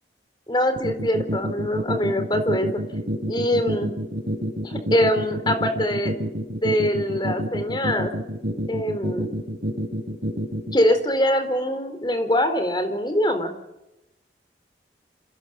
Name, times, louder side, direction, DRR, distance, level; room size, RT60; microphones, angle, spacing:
voice 1, 0.5-2.8 3.3-4.0 4.6-6.1 6.6-8.1 8.7-9.3 10.7-13.5, equal, 25° left, 8 dB, 4.1 m, -23 dB
sound 1, 0.8-10.8, equal, 60° right, 4.0 m, -27 dB
29.0 x 27.0 x 7.2 m, 0.90 s
head